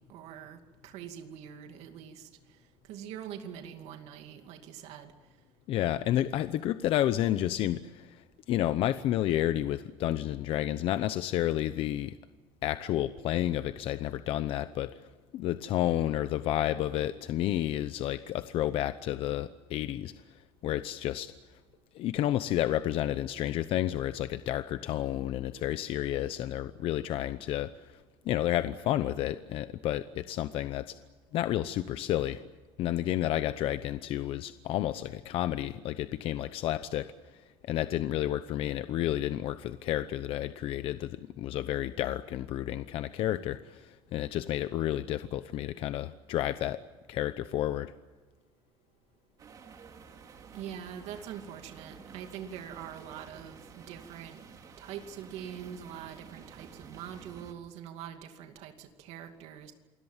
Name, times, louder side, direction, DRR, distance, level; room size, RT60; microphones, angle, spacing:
voice 1, 0.1-2.3 2.9-5.1 50.5-54.5 54.8-59.7, right 9 dB, 80° right, 6 dB, 2.5 m, -44 dB
voice 2, 5.7-12.1 12.6-15.1 15.3-21.3 21.9-30.9 31.3-32.4 32.8-37.4 37.7-46.8 47.1-47.9, left 13 dB, 60° left, 12 dB, 0.8 m, -31 dB
sound 1, 49.4-57.5, right 5 dB, 35° right, 2.7 m, -51 dB
28.0 x 21.0 x 7.4 m, 1.2 s
cardioid pair, 175°, 11 cm